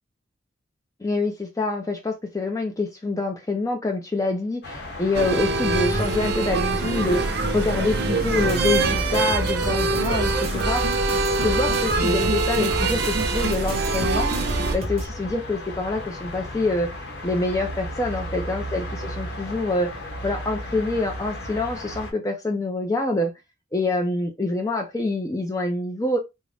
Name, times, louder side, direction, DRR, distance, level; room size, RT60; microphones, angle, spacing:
voice 1, 1.0-10.9 11.4-14.4 14.7-16.9 17.2-19.9 20.2-23.3 23.7-26.2, left 2 dB, 15° left, 0.4 m, -26 dB
sound 1, 4.6-22.1, left 1 dB, 60° left, 0.9 m, -36 dB
sound 2, 5.1-14.8, right 3 dB, 55° right, 0.7 m, -24 dB
sound 3, 8.5-15.1, right 1 dB, 30° right, 1.0 m, -31 dB
3.7 x 2.1 x 3.2 m
head